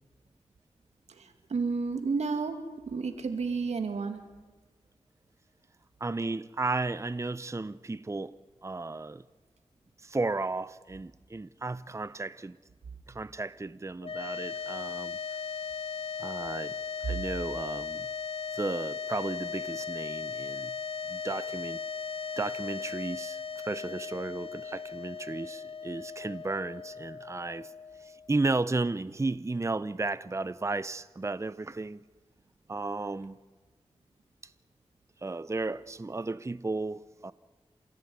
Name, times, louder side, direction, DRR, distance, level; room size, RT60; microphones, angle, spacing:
voice 1, 1.1-2.6 2.9-4.2, right 4 dB, 90° right, 2.5 m, -31 dB
voice 2, 6.0-8.4 8.6-9.2 10.0-12.6 13.1-15.2 16.2-16.7 17.0-18.1 18.5-20.7 21.1-21.8 22.4-27.7 28.0-32.0 32.7-33.4 34.4-34.5 35.2-37.3, right 3 dB, 25° right, 0.7 m, -34 dB
sound 1, 14.0-28.4, left 6 dB, 65° left, 1.8 m, -37 dB
27.5 x 16.0 x 9.6 m
cardioid pair, 50°, 11 cm